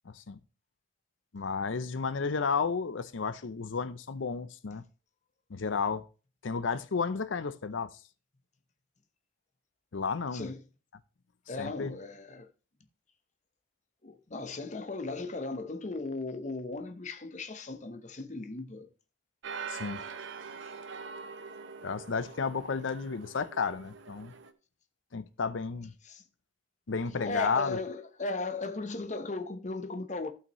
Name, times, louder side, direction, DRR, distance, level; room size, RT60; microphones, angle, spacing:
voice 1, 1.3-4.8 5.5-6.0 6.4-7.9 9.9-10.5 11.6-12.0 19.7-20.0 21.8-24.3 25.1-25.9 26.9-27.8, left 5 dB, 85° left, 0.6 m, -32 dB
voice 2, 11.5-12.5 14.0-18.9 26.1-26.2 27.2-30.3, left 3 dB, 40° left, 0.9 m, -37 dB
sound 1, 19.4-24.5, right 5 dB, 80° right, 0.8 m, -43 dB
15.5 x 5.7 x 3.1 m
head